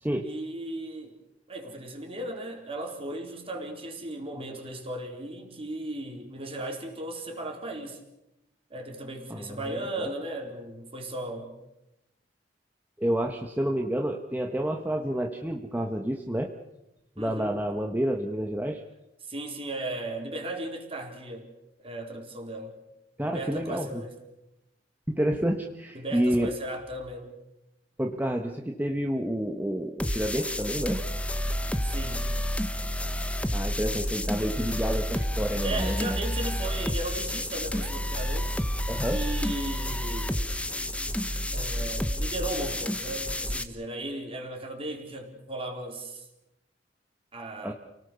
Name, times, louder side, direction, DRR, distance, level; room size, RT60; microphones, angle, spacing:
voice 1, 0.2-1.2 1.5-8.0 8.7-11.5 17.2-17.5 19.3-21.5 21.8-22.8 23.2-24.2 25.9-27.3 31.8-32.3 33.8-33.9 35.6-38.6 39.1-40.4 41.5-46.2 47.3-47.7, right 1 dB, 30° right, 2 dB, 4.3 m, -36 dB
voice 2, 9.3-10.1 13.0-16.5 17.2-18.8 23.2-24.0 25.1-26.5 28.0-31.0 33.5-36.2 38.9-39.2 47.6-47.7, equal, 10° right, 2 dB, 1.3 m, -29 dB
sound 1, 30.0-43.6, equal, 5° left, 1.2 m, -30 dB
29.5 x 18.5 x 7.0 m, 0.92 s
head